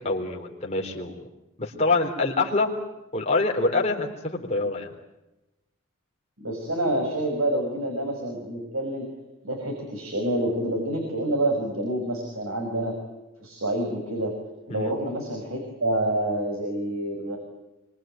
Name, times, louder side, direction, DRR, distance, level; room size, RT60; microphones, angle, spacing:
voice 1, 0.0-1.1 1.6-2.7 3.1-4.9 14.7-14.9, left 3 dB, 30° left, 0 dB, 3.9 m, -25 dB
voice 2, 6.4-9.1 9.4-12.9 13.4-14.3 14.7-17.4, right 1 dB, 85° right, 2 dB, 5.7 m, -27 dB
26.0 x 24.0 x 9.2 m, 0.98 s
head